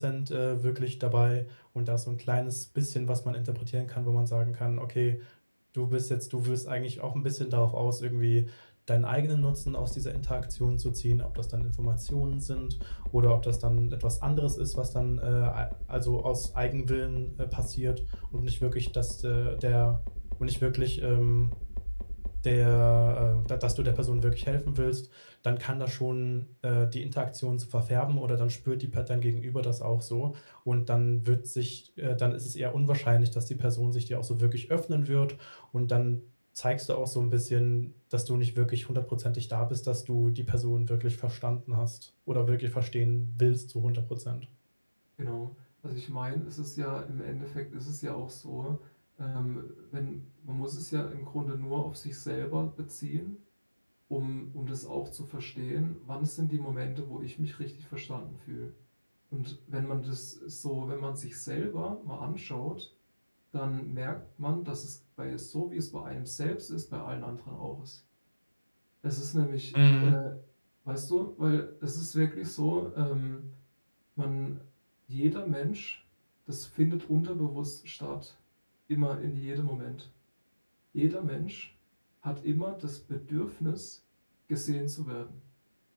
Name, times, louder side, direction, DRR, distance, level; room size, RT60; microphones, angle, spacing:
voice 1, 0.0-5.3 5.7-20.0 20.4-21.5 22.4-36.2 36.5-44.4 69.7-70.2, equal, 55° right, 4 dB, 0.9 m, -28 dB
sound 1, 9.4-24.9, equal, 85° left, 1.0 m, -35 dB
voice 2, 45.2-45.5 45.8-48.9 49.2-53.4 54.1-58.7 59.3-62.9 63.5-68.0 69.0-70.3 70.8-73.5 74.2-74.6 75.1-76.0 76.5-78.3 78.9-80.1 80.9-81.7 82.2-84.0 84.5-85.4, equal, ahead, -27 dB, 0.8 m, -34 dB
3.3 x 2.9 x 3.8 m, 0.32 s
figure-of-eight pair, 180°, 0 cm